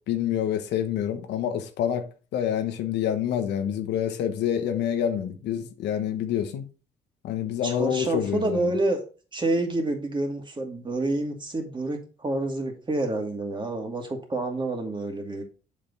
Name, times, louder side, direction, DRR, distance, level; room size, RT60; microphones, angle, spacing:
voice 1, 0.1-6.6 7.2-8.7, left 9 dB, 75° left, 1.2 m, -27 dB
voice 2, 7.6-9.0 9.3-15.4, right 2 dB, 25° right, 2.4 m, -28 dB
7.4 x 5.3 x 4.1 m
supercardioid pair, 75°, 18 cm